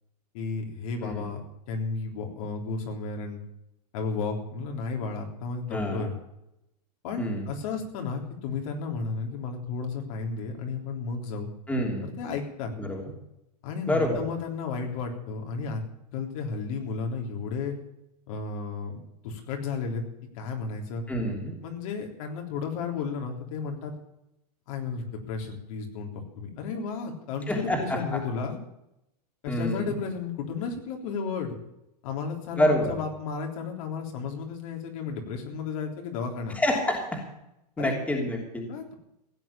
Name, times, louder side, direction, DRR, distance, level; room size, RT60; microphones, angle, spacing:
voice 1, 0.3-1.4 1.7-3.4 3.9-6.1 7.0-11.5 12.0-12.7 13.6-15.8 16.1-17.8 18.3-20.0 20.3-21.0 21.6-23.9 24.7-26.1 26.4-28.6 29.4-31.6 32.0-36.5 37.8-37.9 38.7-38.9, left 5 dB, 55° left, 2 dB, 3.6 m, -33 dB
voice 2, 5.7-6.1 7.2-7.5 11.7-12.1 12.8-13.0 13.9-14.2 21.1-21.5 27.5-28.0 29.5-30.0 32.6-33.0 36.5-37.2 37.8-38.6, left 1 dB, 5° left, 0 dB, 3.1 m, -27 dB
16.5 x 8.0 x 8.5 m, 0.85 s
hypercardioid pair, 140°, 21 cm